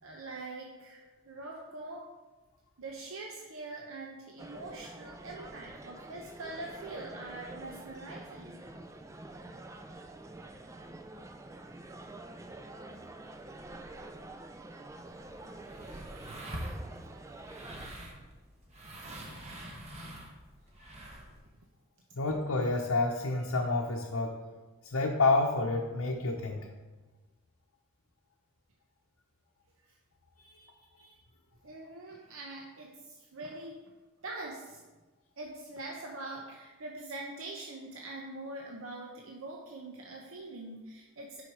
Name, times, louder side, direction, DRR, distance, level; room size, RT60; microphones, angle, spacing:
voice 1, 0.0-2.1 2.8-8.6 12.6-12.9 31.6-33.8 34.2-34.8 35.4-41.4, right 2 dB, 75° right, -1 dB, 0.8 m, -43 dB
sound 1, 4.4-17.9, right 2 dB, 15° right, 0.3 m, -47 dB
sound 2, 15.1-21.4, right 1 dB, 30° right, 1.1 m, -45 dB
voice 2, 22.2-24.4 24.8-26.7 30.4-30.7 30.9-31.1, left 3 dB, 85° left, -1 dB, 0.7 m, -29 dB
6.1 x 5.4 x 4.7 m, 1.2 s
head